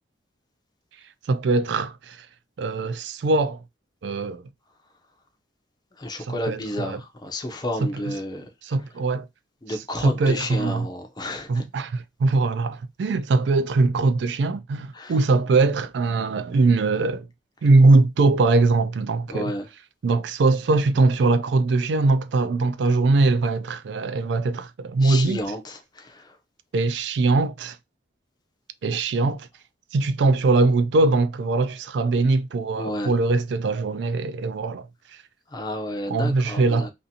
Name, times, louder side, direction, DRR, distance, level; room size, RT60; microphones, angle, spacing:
voice 1, 1.3-2.3 2.6-3.6 4.0-4.4 6.2-7.0 7.8-7.9 8.6-9.3 10.0-10.9 11.5-17.3 17.6-19.5 20.0-25.4 26.7-27.8 28.8-29.5 29.9-34.9 36.1-36.9, right 3 dB, 70° right, 0.3 m, -21 dB
voice 2, 6.0-8.5 9.6-11.6 14.9-15.2 19.3-19.7 25.0-26.4 32.8-33.1 35.5-36.9, left 1 dB, 20° left, 0.4 m, -31 dB
2.6 x 2.5 x 2.6 m
head